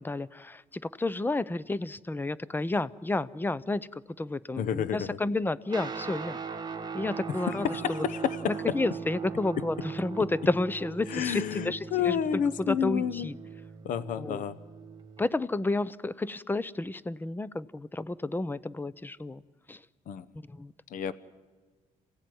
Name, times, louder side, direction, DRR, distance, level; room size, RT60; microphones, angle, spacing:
voice 1, 0.0-6.4 6.9-8.1 8.6-13.4 14.2-14.4 15.2-19.4 19.7-19.9 20.5-20.7, left 2 dB, 15° left, 19 dB, 0.7 m, -31 dB
voice 2, 4.6-5.1 7.5-8.5 11.1-13.3 13.8-14.6 20.1-20.3 20.9-21.1, left 8 dB, 75° left, 16 dB, 1.0 m, -30 dB
Guitar, 5.7-15.3, right 5 dB, 30° right, 1.8 m, -39 dB
27.5 x 16.5 x 9.4 m, 1.3 s
cardioid pair, 105°, 14 cm